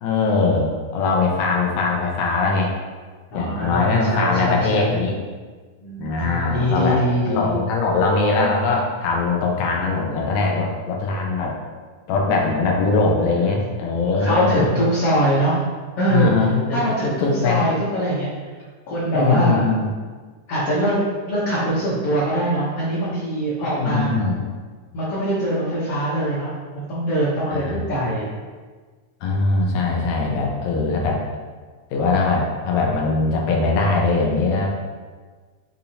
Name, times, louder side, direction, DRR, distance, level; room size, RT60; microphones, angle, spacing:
voice 1, 0.0-2.7 3.3-5.2 6.0-7.0 7.3-11.5 12.1-14.7 16.1-17.6 19.1-19.9 23.6-24.4 27.6-27.8 29.2-31.2 31.9-34.7, left 3 dB, 90° left, -1 dB, 2.4 m, -21 dB
voice 2, 3.3-5.0 5.8-7.5 13.3-13.6 14.1-15.6 16.0-16.3 16.7-18.3 18.9-19.7 20.5-21.0 21.3-24.1 24.9-28.3, right 1 dB, 75° left, -9 dB, 1.3 m, -23 dB
6.8 x 2.8 x 2.7 m, 1.5 s
omnidirectional pair, 3.8 m